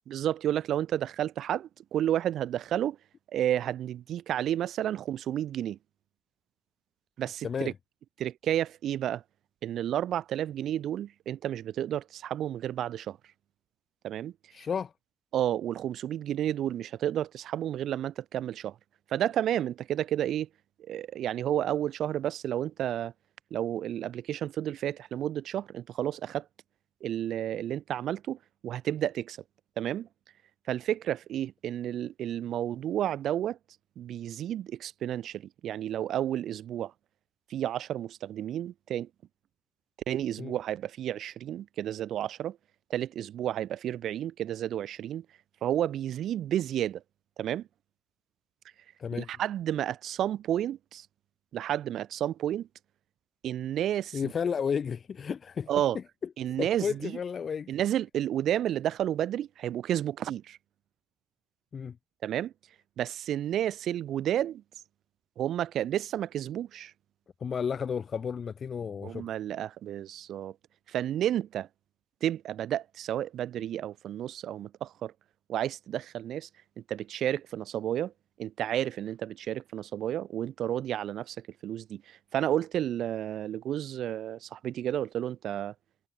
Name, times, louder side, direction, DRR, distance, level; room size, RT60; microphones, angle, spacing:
voice 1, 0.1-3.0 3.3-5.8 7.2-7.7 8.2-9.2 9.6-13.2 14.0-14.3 15.3-18.7 19.1-20.5 20.9-23.1 23.5-26.4 27.0-28.4 28.6-29.4 29.8-30.1 30.7-33.6 34.0-36.9 37.5-39.1 40.1-42.6 42.9-45.2 45.6-47.0 47.4-47.7 49.1-51.1 51.5-52.7 53.4-54.3 55.7-56.0 56.4-57.2 57.7-60.6 62.2-62.5 63.0-64.6 65.4-66.9 69.0-70.5 70.9-71.7 72.2-75.1 75.5-76.5 76.9-78.1 78.4-81.4 81.6-85.7, right 11 dB, 75° right, 3.1 m, -31 dB
voice 2, 14.5-14.9 40.4-40.5 49.0-49.3 54.1-55.7 56.6-57.7 61.7-62.0 67.4-69.3, left 6 dB, 45° left, 2.8 m, -32 dB
cardioid pair, 115°, 0 cm